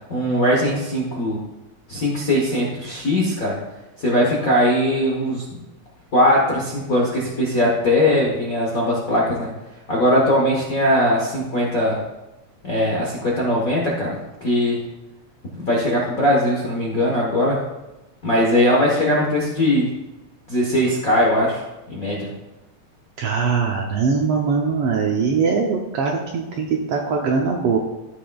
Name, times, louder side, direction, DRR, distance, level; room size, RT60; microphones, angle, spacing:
voice 1, 0.1-1.4 1.9-3.6 4.0-5.4 6.1-9.5 9.9-12.0 12.6-14.8 15.5-17.6 18.2-19.9 20.5-21.6 21.9-22.3, left 1 dB, 55° left, -4 dB, 0.9 m, -20 dB
voice 2, 23.2-27.8, right 5 dB, 75° right, 0 dB, 1.4 m, -21 dB
13.5 x 5.9 x 2.3 m, 1.0 s
omnidirectional pair, 3.3 m